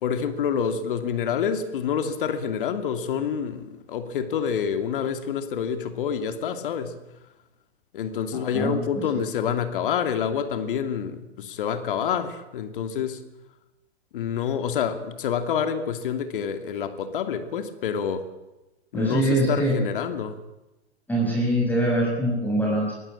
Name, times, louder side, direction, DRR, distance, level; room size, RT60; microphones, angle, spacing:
voice 1, 0.0-7.0 7.9-13.2 14.1-18.2 18.9-20.4, left 7 dB, 50° left, 8 dB, 2.7 m, -27 dB
voice 2, 8.3-9.1 18.9-19.8 21.1-22.9, right 1 dB, 5° left, -3 dB, 6.1 m, -24 dB
24.5 x 18.5 x 8.7 m, 1.0 s
figure-of-eight pair, 120°, 33 cm